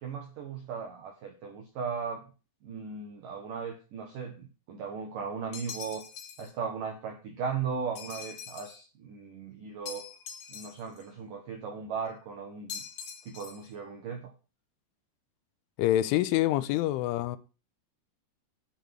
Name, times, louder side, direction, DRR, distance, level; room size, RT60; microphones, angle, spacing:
voice 1, 0.0-2.2 2.6-6.0 6.4-10.1 10.5-12.8 13.3-14.3, right 6 dB, 60° right, 2.5 m, -37 dB
sound 1, 5.5-6.5 8.0-8.8 9.9-11.0 12.7-13.7, left 7 dB, 55° left, 3.4 m, -43 dB
voice 2, 15.8-17.4, left 14 dB, 80° left, 3.2 m, -26 dB
10.5 x 6.3 x 7.7 m
omnidirectional pair, 5.8 m